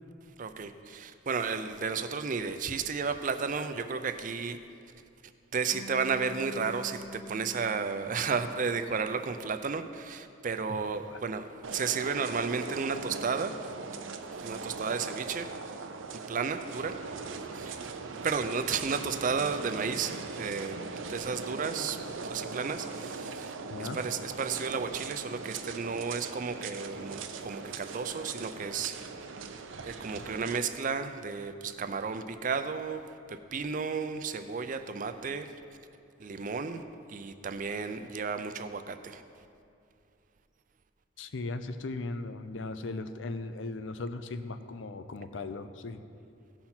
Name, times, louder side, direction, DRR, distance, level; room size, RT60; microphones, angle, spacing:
voice 1, 0.4-4.6 5.5-13.7 14.3-15.5 16.1-17.0 17.4-17.8 18.2-20.8 21.1-23.5 23.8-29.0 29.8-33.0 33.3-35.6 36.2-36.8 37.1-39.2, right 5 dB, 40° right, 9 dB, 0.5 m, -33 dB
Bass guitar, 5.7-9.8, equal, 25° left, 1.8 m, -46 dB
voice 2, 10.7-11.2 23.7-24.0 41.2-46.0, left 3 dB, 70° left, 10 dB, 0.5 m, -38 dB
sound 1, 11.6-30.6, right 4 dB, 80° right, 0.7 m, -40 dB
16.5 x 5.7 x 4.4 m, 2.5 s
head